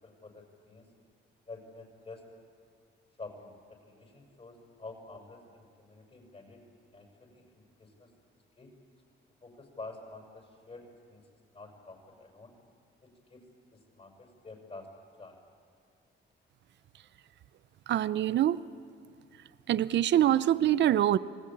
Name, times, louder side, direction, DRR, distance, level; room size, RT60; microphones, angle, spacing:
voice 1, 0.0-0.9 1.5-2.2 3.2-6.6 6.9-8.1 8.6-8.7 9.4-12.5 13.0-14.9 15.2-15.4, left 3 dB, 30° left, 2 dB, 6.5 m, -49 dB
voice 2, 17.9-18.6 19.7-21.2, right 11 dB, 65° right, 17 dB, 0.7 m, -24 dB
27.5 x 19.0 x 8.8 m, 2.3 s
cardioid pair, 90°, 20 cm